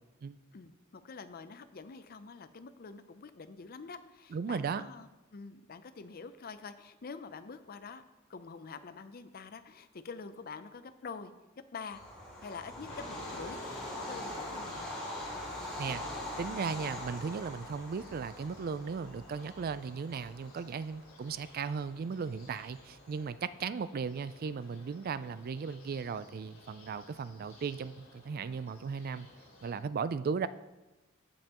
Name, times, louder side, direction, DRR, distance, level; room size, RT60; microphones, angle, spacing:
voice 1, 0.5-8.0 8.3-11.3 11.7-12.0 12.4-13.6 13.9-14.9, left 5 dB, 45° left, 11 dB, 0.5 m, -46 dB
voice 2, 4.3-4.8 15.8-29.3 29.6-30.5, right 5 dB, 45° right, 15 dB, 0.3 m, -36 dB
Bird vocalization bird call bird song / Train, 11.9-23.1, left 1 dB, 5° left, 2.7 m, -43 dB
sound 1, 12.9-29.7, left 2 dB, 85° left, 2.7 m, -53 dB
15.5 x 5.4 x 3.0 m, 1.1 s
head